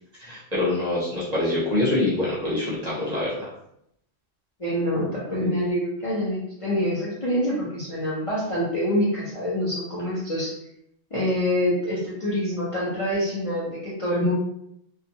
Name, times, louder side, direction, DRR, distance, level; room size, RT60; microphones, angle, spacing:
voice 1, 0.2-3.5, left 2 dB, 40° right, -7 dB, 0.8 m, -25 dB
voice 2, 4.6-10.5 11.1-14.3, left 1 dB, 35° left, -7 dB, 0.7 m, -26 dB
2.4 x 2.4 x 2.8 m, 0.74 s
omnidirectional pair, 1.3 m